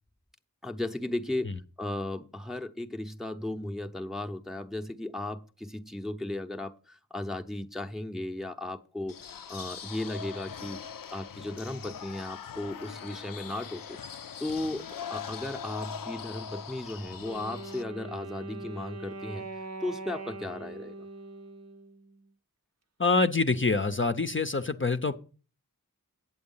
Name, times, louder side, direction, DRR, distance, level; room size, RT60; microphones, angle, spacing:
voice 1, 0.6-1.5 1.8-9.2 9.5-10.8 11.1-14.0 14.4-19.5 19.8-20.9, left 1 dB, ahead, 0.7 m, -35 dB
sound 1, 9.1-17.8, left 7 dB, 80° left, 0.5 m, -41 dB
Wind instrument woodwind instrument, 17.2-22.3, right 3 dB, 50° right, 0.7 m, -42 dB
voice 2, 23.0-25.1, left 3 dB, 35° left, 0.6 m, -26 dB
8.7 x 7.9 x 5.5 m
wide cardioid pair, 45°, 33 cm